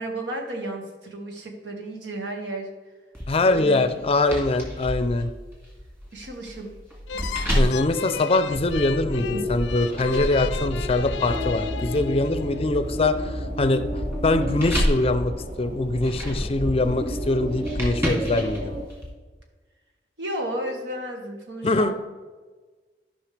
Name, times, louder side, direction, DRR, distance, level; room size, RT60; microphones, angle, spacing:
voice 1, 0.0-2.7 3.4-3.9 6.1-6.7 7.1-7.2 20.2-21.9, right 1 dB, 85° right, 2 dB, 1.6 m, -33 dB
sound 1, 3.1-9.0 9.5-19.1, equal, 15° right, 2.2 m, -31 dB
voice 2, 3.3-5.3 7.5-13.8 14.2-15.3 15.6-18.8 21.6-21.9, left 2 dB, 35° left, 10 dB, 0.5 m, -23 dB
sound 2, 7.1-12.6, left 5 dB, 90° left, 0.4 m, -34 dB
sound 3, 8.5-18.8, equal, 45° right, 1.3 m, -31 dB
13.0 x 5.5 x 3.3 m, 1.4 s
head